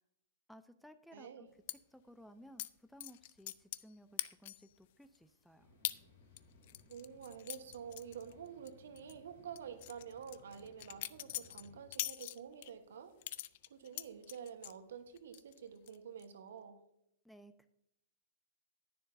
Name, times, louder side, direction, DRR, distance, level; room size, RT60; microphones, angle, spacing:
voice 1, 0.5-5.7 17.2-17.7, equal, ahead, 11 dB, 0.5 m, -58 dB
voice 2, 1.1-1.4 6.9-13.1 13.7-16.8, right 7 dB, 65° right, 9 dB, 1.1 m, -49 dB
sound 1, 1.7-1.8 2.6-2.7 3.0-3.9 4.2-4.7 5.1-5.2 5.8-6.0 6.4-8.7 9.0-9.1 9.6-12.7 13.2-14.8 15.2-15.6 15.9-16.2, left 15 dB, 55° left, 0.4 m, -42 dB
sound 2, 5.6-11.9, left 2 dB, 75° left, 3.7 m, -64 dB
10.5 x 9.8 x 2.6 m, 0.79 s
figure-of-eight pair, 105°, 0 cm